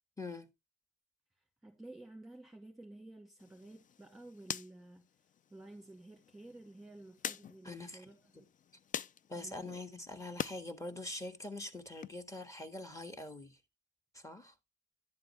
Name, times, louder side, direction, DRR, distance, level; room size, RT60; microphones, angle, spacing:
voice 1, 0.2-0.5 7.6-8.0 8.3-8.4 9.3-13.6 14.1-14.5, left 2 dB, 15° left, 1.5 m, -44 dB
voice 2, 1.6-5.1 5.5-8.5 9.3-9.8, right 2 dB, ahead, 2.3 m, -53 dB
sound 1, 3.4-10.6 11.0-12.1, left 8 dB, 40° left, 0.4 m, -46 dB
11.0 x 7.6 x 3.2 m
cardioid pair, 90°, 20 cm